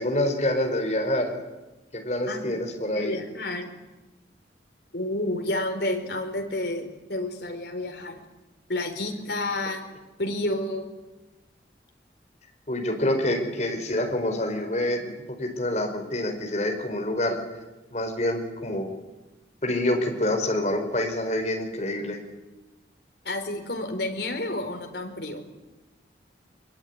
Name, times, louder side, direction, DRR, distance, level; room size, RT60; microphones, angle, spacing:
voice 1, 0.0-1.3 1.9-3.2 12.7-15.1 15.4-17.4 17.9-18.9 19.6-22.2, left 1 dB, 40° left, 3 dB, 4.9 m, -26 dB
voice 2, 2.3-2.6 2.9-3.7 4.9-8.2 8.7-9.8 10.2-10.9 23.2-25.4, left 1 dB, 65° left, 5 dB, 4.3 m, -30 dB
23.0 x 22.5 x 9.7 m, 1.1 s
head